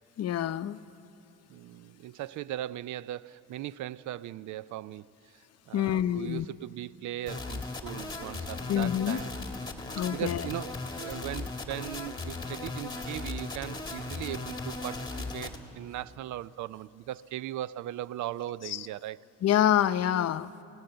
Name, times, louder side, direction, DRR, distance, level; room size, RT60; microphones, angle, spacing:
voice 1, 0.2-0.8 5.7-6.5 8.7-9.2 9.9-10.5 18.6-18.9 19.4-20.5, left 11 dB, 55° left, 0.7 m, -27 dB
voice 2, 1.5-5.1 5.7-9.3 10.1-19.2, right 13 dB, 75° right, 0.5 m, -38 dB
sound 1, 7.3-15.6, left 3 dB, 15° left, 2.2 m, -37 dB
26.5 x 17.5 x 7.9 m
cardioid pair, 90°, 30 cm